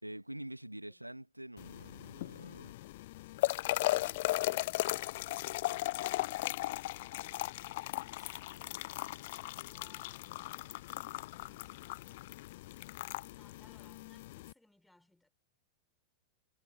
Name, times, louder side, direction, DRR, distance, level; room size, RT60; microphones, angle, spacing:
voice 1, 0.0-2.7, right 1 dB, 85° right, 1.5 m, -46 dB
sound 1, 1.6-14.5, left 18 dB, 50° left, 0.4 m, -37 dB
voice 2, 13.3-15.3, left 1 dB, 5° left, 3.6 m, -67 dB
figure-of-eight pair, 90°, 0 cm